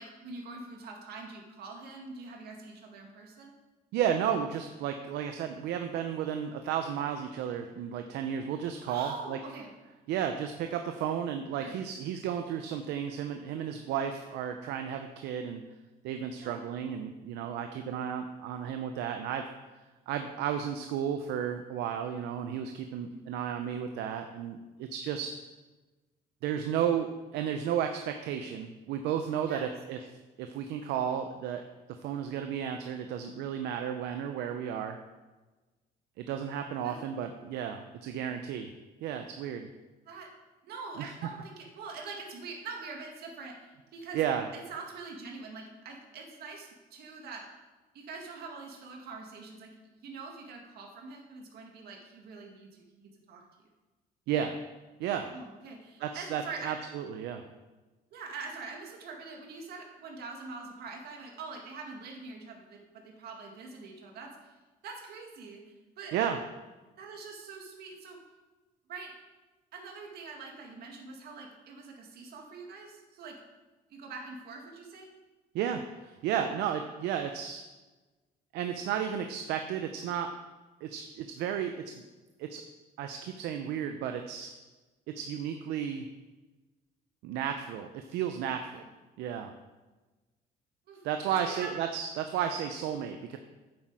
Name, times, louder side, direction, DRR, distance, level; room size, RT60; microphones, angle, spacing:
voice 1, 0.0-3.5 8.9-9.7 11.6-11.8 16.4-16.7 23.1-23.2 29.5-29.7 36.8-37.0 40.1-40.3 40.6-44.2 44.5-47.4 47.9-53.7 55.3-56.7 58.1-64.5 64.8-66.2 67.0-68.2 68.9-69.1 69.7-73.4 73.9-75.1 88.7-88.9 90.9-91.1 91.4-91.7, right 4 dB, 70° right, 1 dB, 2.1 m, -44 dB
voice 2, 3.9-9.4 10.1-15.6 16.0-19.5 20.1-25.3 26.4-30.0 30.4-31.6 32.0-35.0 36.2-38.7 39.0-39.7 41.0-41.1 44.1-44.5 54.3-54.6 55.0-55.3 56.0-57.4 66.1-66.4 75.5-77.6 78.5-80.3 80.8-82.0 82.4-82.6 83.0-84.5 85.1-86.1 87.2-88.8 89.2-89.5 91.0-93.4, right 9 dB, 85° right, 6 dB, 0.6 m, -33 dB
8.6 x 7.6 x 4.8 m, 1.2 s
cardioid pair, 110°, 17 cm